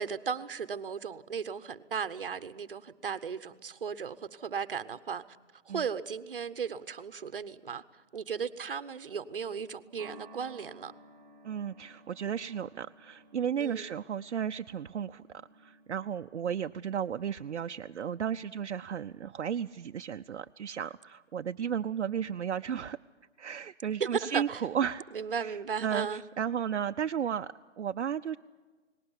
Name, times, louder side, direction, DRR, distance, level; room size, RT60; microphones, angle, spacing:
voice 1, 0.0-5.2 5.7-10.9 13.6-13.9 24.0-24.6 25.1-26.2, right 6 dB, 50° right, 0.9 m, -36 dB
sound 1, 10.0-18.5, right 2 dB, 10° right, 1.9 m, -57 dB
voice 2, 11.4-15.2 15.6-23.0 23.4-25.0 25.4-28.4, right 8 dB, 70° right, 0.6 m, -34 dB
19.5 x 17.5 x 9.8 m
hypercardioid pair, 180°, 36 cm